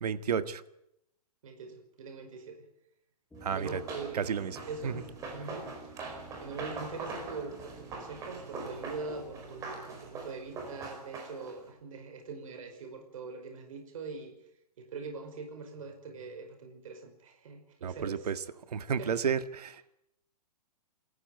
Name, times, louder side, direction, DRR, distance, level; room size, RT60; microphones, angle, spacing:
voice 1, 0.0-0.6 3.4-3.8 4.1-4.5 4.8-4.9 17.8-18.4 18.7-19.8, right 7 dB, 75° right, 11 dB, 1.7 m, -31 dB
voice 2, 1.4-2.7 3.5-4.3 4.7-5.9 6.4-14.4 14.8-18.3 19.0-19.1, right 4 dB, 60° right, 5 dB, 5.2 m, -43 dB
sound 1, 3.3-12.0, right 3 dB, 5° left, 2.8 m, -52 dB
Run, 3.5-11.6, right 3 dB, 15° right, 4.7 m, -42 dB
27.5 x 14.5 x 9.4 m, 0.81 s
hypercardioid pair, 165°, 20 cm